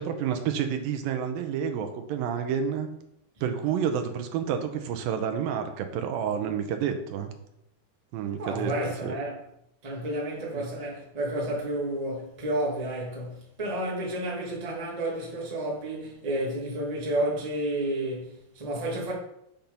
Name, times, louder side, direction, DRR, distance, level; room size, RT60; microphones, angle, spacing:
voice 1, 0.0-2.9 3.4-7.3 8.1-8.7 9.0-9.2 10.5-10.6, right 7 dB, 80° right, 2.3 m, -29 dB
voice 2, 8.4-9.4 9.8-19.1, right 1 dB, 30° right, 0.6 m, -31 dB
7.1 x 6.0 x 5.4 m
omnidirectional pair, 4.8 m